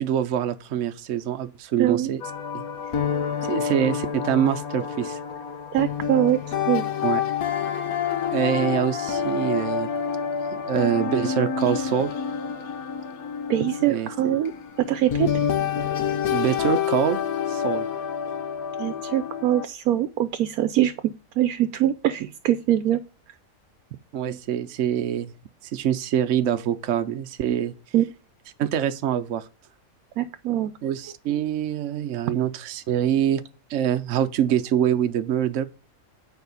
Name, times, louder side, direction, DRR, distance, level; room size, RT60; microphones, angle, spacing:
voice 1, 0.0-2.2 2.5-2.6 3.4-5.2 7.0-7.2 8.3-9.9 10.5-12.1 13.8-14.1 16.3-17.2 17.5-17.8 24.1-25.3 25.7-27.7 28.6-29.5 30.8-33.4 33.7-35.6, right 10 dB, 65° right, 1.0 m, -25 dB
voice 2, 1.8-2.1 5.7-6.4 6.7-6.9 13.5-14.5 14.9-15.3 18.8-23.0 27.9-28.1 30.2-30.7, right 12 dB, 80° right, 1.1 m, -23 dB
sound 1, 2.2-19.7, left 7 dB, 80° left, 1.3 m, -28 dB
9.4 x 4.8 x 6.7 m
omnidirectional pair, 1.5 m